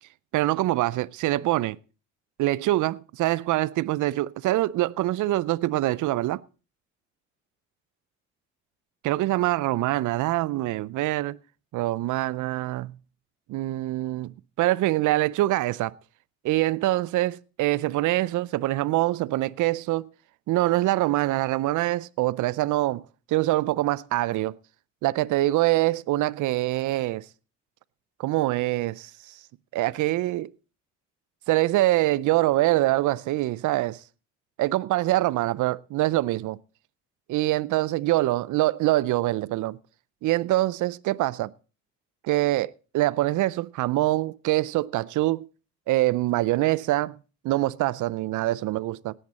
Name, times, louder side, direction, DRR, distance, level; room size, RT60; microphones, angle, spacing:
voice 1, 0.3-1.8 2.4-6.4 9.0-11.4 11.7-12.9 13.5-15.9 16.4-20.1 20.5-23.0 23.3-24.6 25.0-27.2 28.2-29.1 29.7-30.5 31.5-34.0 34.6-36.6 37.3-39.8 40.2-41.5 42.2-45.5 45.9-47.2 47.4-49.1, right 17 dB, 80° right, 0.5 m, -24 dB
17.5 x 10.0 x 4.1 m
cardioid pair, 90°, 30 cm